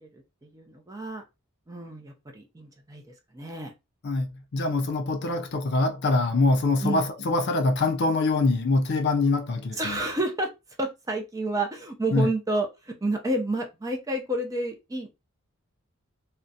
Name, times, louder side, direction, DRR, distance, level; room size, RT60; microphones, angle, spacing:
voice 1, 0.0-1.2 1.7-3.0 3.3-3.7 6.8-7.1 9.8-10.5 10.8-15.1, right 1 dB, 15° right, 0.4 m, -30 dB
voice 2, 4.0-10.0 12.1-12.3, left 3 dB, 50° left, 0.4 m, -24 dB
2.4 x 2.1 x 2.6 m
head